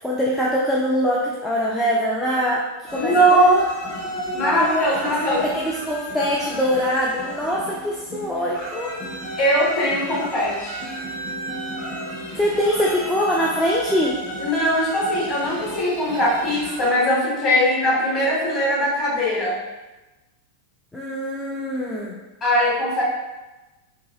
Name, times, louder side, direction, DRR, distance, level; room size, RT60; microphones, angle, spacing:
voice 1, 0.0-3.8 4.1-4.9 5.2-9.0 12.4-14.2 20.9-22.1, equal, 5° left, -5 dB, 0.4 m, -23 dB
sound 1, 2.9-16.9, equal, 40° left, 1.4 m, -34 dB
voice 2, 2.9-3.5 4.3-5.4 9.4-10.8 14.4-19.6 22.4-23.0, equal, 25° left, -8 dB, 1.3 m, -20 dB
2.9 x 2.6 x 2.6 m, 1.1 s
figure-of-eight pair, 90°, 0 cm